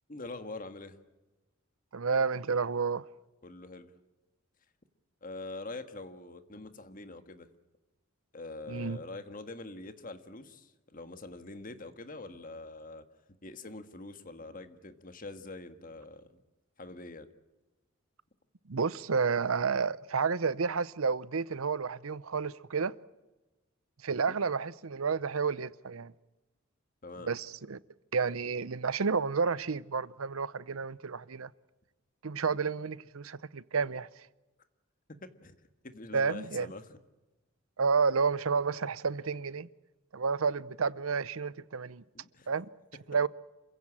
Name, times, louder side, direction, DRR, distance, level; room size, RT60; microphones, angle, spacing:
voice 1, 0.1-1.0 3.4-3.9 5.2-7.5 8.3-13.1 13.4-16.4 16.8-17.3 24.2-24.4 27.0-27.3 35.1-35.5 35.8-37.0 42.1-42.5, left 2 dB, 40° left, 1.6 m, -44 dB
voice 2, 1.9-3.0 8.7-9.0 18.7-22.9 24.0-26.1 27.3-27.8 28.1-31.5 32.2-34.1 36.1-36.7 37.8-39.7 40.1-42.0 42.5-42.7 43.1-43.3, right 5 dB, 85° right, 0.7 m, -30 dB
28.0 x 16.0 x 8.8 m
head